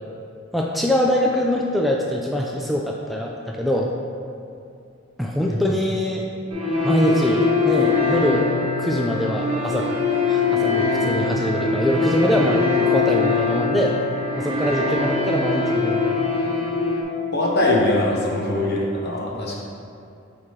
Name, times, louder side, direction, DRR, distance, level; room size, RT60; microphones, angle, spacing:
voice 1, 0.5-3.9 5.2-6.3 6.8-8.5 8.8-14.0 14.4-16.2 19.3-19.5, left 1 dB, ahead, -2 dB, 0.3 m, -23 dB
sound 1, 6.5-17.0, left 3 dB, 30° right, 1.1 m, -22 dB
voice 2, 17.3-19.6, left 1 dB, 55° left, -2 dB, 1.0 m, -22 dB
8.6 x 3.7 x 3.2 m, 2.5 s
head